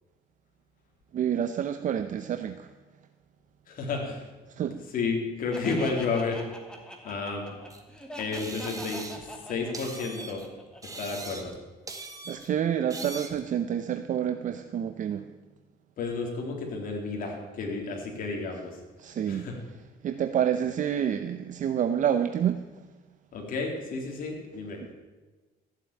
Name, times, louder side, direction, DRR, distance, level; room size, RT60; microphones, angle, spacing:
voice 1, 1.1-2.7 4.6-4.8 12.3-15.2 19.0-19.5 20.0-22.6, right 9 dB, 50° right, 9 dB, 0.8 m, -28 dB
voice 2, 3.7-4.2 4.9-6.4 7.0-7.6 8.2-9.1 9.5-10.4 11.0-11.5 16.0-18.8 19.3-19.6 23.3-24.8, left 4 dB, 55° left, 1 dB, 3.4 m, -31 dB
Laughter, 5.5-11.2, equal, 5° left, 2.6 m, -43 dB
sound 1, 7.7-7.8 8.3-9.3 9.7-10.5 10.8-11.6 11.9-12.5 12.9-13.4, right 3 dB, 20° right, 1.9 m, -41 dB
15.0 x 7.7 x 8.9 m, 1.2 s
cardioid pair, 110°, 17 cm